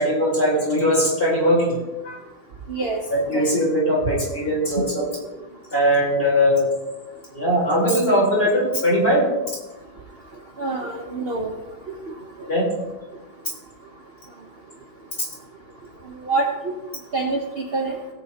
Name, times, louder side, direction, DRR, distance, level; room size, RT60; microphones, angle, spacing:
voice 1, 0.0-1.8 2.0-2.1 3.1-5.4 5.7-6.7 7.3-9.3 12.5-12.7, equal, 30° left, -6 dB, 4.3 m, -20 dB
voice 2, 2.7-3.0 3.3-3.6 10.6-11.5 16.3-16.5 17.1-17.4 17.7-17.9, right 3 dB, 45° right, 1 dB, 1.0 m, -25 dB
17.5 x 8.9 x 2.9 m, 1.1 s
omnidirectional pair, 1.8 m